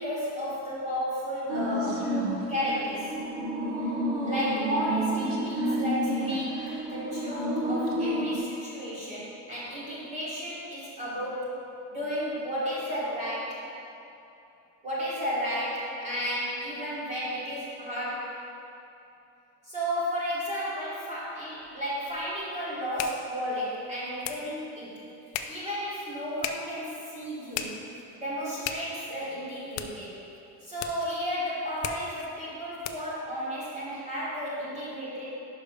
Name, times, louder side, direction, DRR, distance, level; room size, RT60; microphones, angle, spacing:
voice 1, 0.0-2.1 2.5-3.1 4.2-6.6 6.9-11.5 11.9-13.6 14.8-18.4 19.7-25.0 25.5-27.8 28.2-30.2 30.6-35.5, equal, 20° right, -9 dB, 1.4 m, -33 dB
sound 1, 1.5-8.4, equal, 40° right, 0.7 m, -30 dB
sound 2, 21.6-33.2, left 8 dB, 85° left, 0.5 m, -40 dB
5.6 x 5.2 x 5.0 m, 2.9 s
cardioid pair, 175°, 36 cm